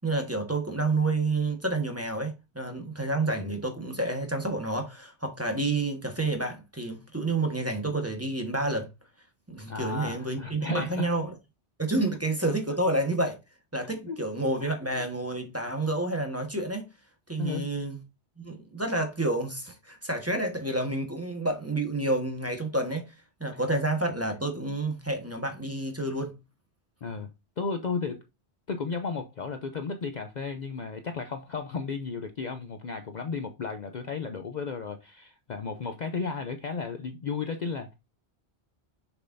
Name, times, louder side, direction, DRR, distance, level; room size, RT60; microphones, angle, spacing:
voice 1, 0.0-8.9 9.5-11.3 11.8-13.4 13.7-16.9 17.3-18.0 18.4-23.1 23.4-26.3, right 2 dB, 15° right, 1.2 m, -29 dB
voice 2, 9.7-11.1 14.1-14.2 14.6-14.8 17.4-17.7 27.0-27.3 27.6-28.2 28.7-37.9, left 5 dB, 50° left, 0.6 m, -34 dB
6.6 x 6.1 x 2.6 m
omnidirectional pair, 1.1 m